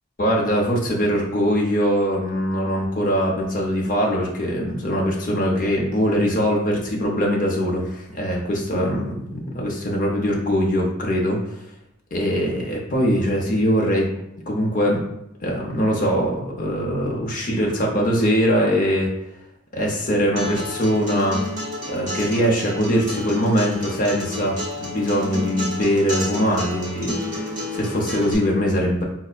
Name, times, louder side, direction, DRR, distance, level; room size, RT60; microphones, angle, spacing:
voice 1, 0.2-11.4 12.1-14.1 14.5-15.0 15.4-19.1 19.7-21.4 21.9-29.0, equal, 40° left, -1 dB, 0.7 m, -22 dB
Acoustic guitar, 20.4-28.3, left 1 dB, 35° right, 0.7 m, -31 dB
5.1 x 2.0 x 2.4 m, 0.82 s
head